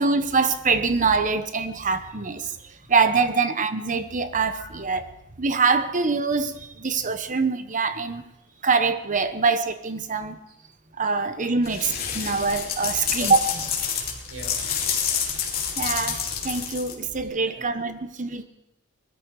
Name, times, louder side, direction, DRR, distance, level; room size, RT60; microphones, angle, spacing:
voice 1, 0.0-2.5 2.9-5.1 5.4-8.2 8.6-10.4 11.0-13.6 15.8-18.4, right 4 dB, 40° right, 11 dB, 1.0 m, -24 dB
sound 1, 11.6-17.2, left 7 dB, 45° left, 3.0 m, -28 dB
voice 2, 12.8-13.3 14.1-14.5 14.9-15.2 17.2-17.6, right 1 dB, 90° right, 2 dB, 4.4 m, -45 dB
20.5 x 13.0 x 4.8 m, 0.87 s
head